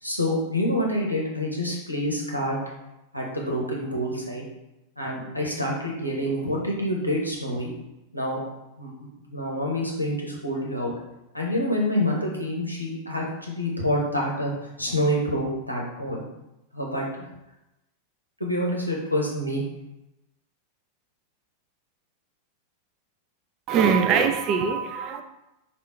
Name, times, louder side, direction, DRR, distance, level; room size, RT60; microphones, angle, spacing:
voice 1, 0.0-2.6 3.1-4.4 5.0-7.7 8.1-8.4 8.8-8.9 9.2-10.9 11.3-14.5 14.8-16.2 16.7-17.1 18.4-19.6, equal, 90° left, -3 dB, 0.8 m, -27 dB
voice 2, 23.7-25.2, right 6 dB, 35° right, 7 dB, 0.4 m, -22 dB
3.5 x 2.4 x 3.4 m, 0.92 s
figure-of-eight pair, 90°, 0 cm